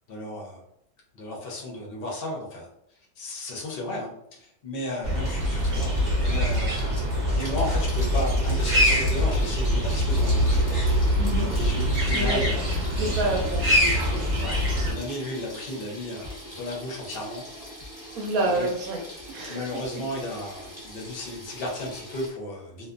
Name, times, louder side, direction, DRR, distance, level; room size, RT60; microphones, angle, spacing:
voice 1, 0.1-0.6 1.1-10.8 11.1-11.2 11.5-12.8 14.4-17.4 18.0-18.7 19.5-22.9, left 1 dB, 55° left, -2 dB, 0.6 m, -34 dB
sound 1, 5.0-14.9, equal, 40° right, 0.8 m, -24 dB
Water tap faucet / Sink (filling or washing), 5.2-22.3, left 1 dB, 15° left, 0.7 m, -41 dB
voice 2, 11.2-11.5 12.1-12.5 12.9-14.3 18.1-19.0 19.3-19.6 19.9-20.0, right 2 dB, 70° right, 0 dB, 0.9 m, -28 dB
2.6 x 2.3 x 2.4 m, 0.77 s
omnidirectional pair, 1.7 m